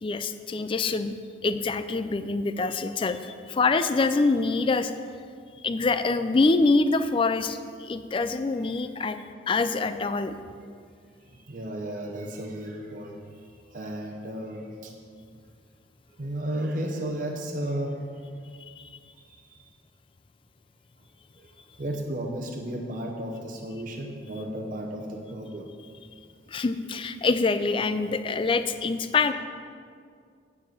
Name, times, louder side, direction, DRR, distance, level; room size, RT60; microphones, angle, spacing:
voice 1, 0.0-4.9 5.6-9.2 9.5-10.4 18.6-18.9 26.5-29.3, left 3 dB, 25° left, 11 dB, 0.3 m, -25 dB
voice 2, 11.3-13.5 13.7-14.9 16.2-18.0 19.3-19.6 21.4-21.5 21.8-25.7, right 1 dB, 45° right, 1 dB, 0.8 m, -34 dB
9.4 x 4.8 x 7.5 m, 2.2 s
head